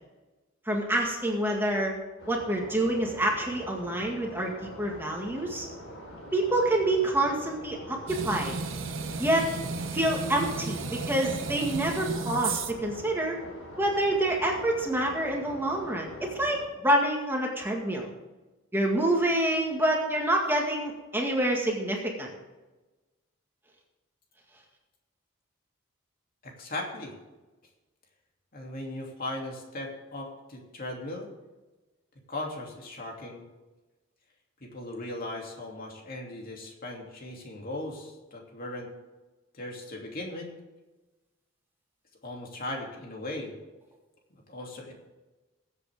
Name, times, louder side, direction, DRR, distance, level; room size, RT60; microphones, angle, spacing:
voice 1, 0.7-1.9 2.3-5.7 6.3-8.5 9.2-9.5 9.9-13.4 13.8-18.1 18.7-22.3, right 1 dB, 10° right, 0 dB, 1.9 m, -27 dB
sound 1, 2.2-16.7, equal, 75° left, 4.3 m, -44 dB
sound 2, 8.1-12.9, right 4 dB, 65° right, 1.0 m, -34 dB
voice 2, 26.4-27.1 28.5-31.3 32.3-33.4 34.6-38.9 39.5-40.5 42.2-43.5 44.5-44.9, left 1 dB, 45° left, 0 dB, 2.8 m, -38 dB
21.5 x 8.2 x 3.6 m, 1.1 s
head